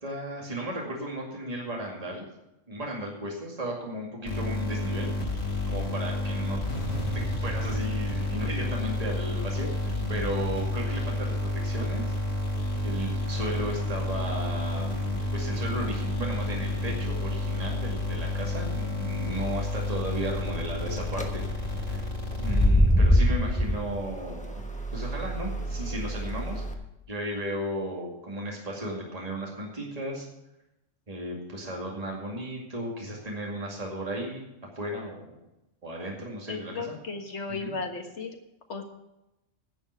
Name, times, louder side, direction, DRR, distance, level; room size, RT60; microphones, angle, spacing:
voice 1, 0.0-2.3 2.7-5.1 5.7-6.6 7.1-12.0 12.8-14.9 15.3-22.0 22.4-24.6 24.9-26.6 27.1-30.3 31.1-35.4 35.8-36.9 37.5-37.7, right 1 dB, 30° right, -1 dB, 2.4 m, -35 dB
sound 1, 4.3-23.0, left 2 dB, 85° left, 3.3 m, -30 dB
sound 2, 20.9-21.2 22.3-26.7, equal, 5° left, 1.0 m, -25 dB
voice 2, 36.5-38.4 38.7-38.8, left 4 dB, 65° left, 4 dB, 1.8 m, -35 dB
10.5 x 7.2 x 8.3 m, 0.92 s
omnidirectional pair, 1.3 m